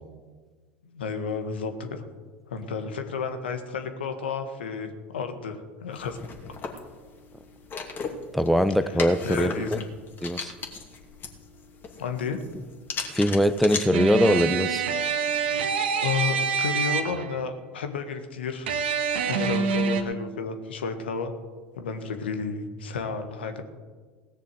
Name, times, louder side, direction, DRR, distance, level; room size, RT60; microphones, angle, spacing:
voice 1, 0.8-2.0 2.5-6.2 8.9-9.9 12.0-12.4 16.0-18.7 19.2-21.3 21.7-23.6, left 5 dB, 80° left, 7 dB, 1.6 m, -32 dB
sound 1, 5.9-13.8, left 5 dB, 35° left, 2.6 m, -37 dB
voice 2, 8.3-9.8 10.2-10.5 13.1-14.9, equal, ahead, 12 dB, 0.8 m, -22 dB
sound 2, 13.9-17.4 18.7-20.0, right 5 dB, 75° right, 1.4 m, -26 dB
17.5 x 6.8 x 7.9 m, 1.4 s
hypercardioid pair, 80°, 6 cm